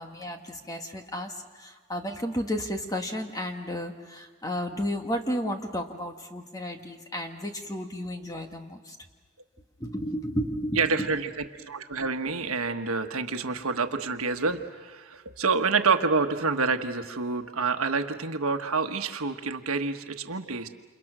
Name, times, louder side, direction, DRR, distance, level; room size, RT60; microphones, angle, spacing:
voice 1, 0.0-9.0 9.8-11.1, equal, 15° left, 4 dB, 1.6 m, -33 dB
voice 2, 10.8-20.7, right 4 dB, 80° right, 7 dB, 1.4 m, -28 dB
29.0 x 28.0 x 6.2 m, 1.4 s
head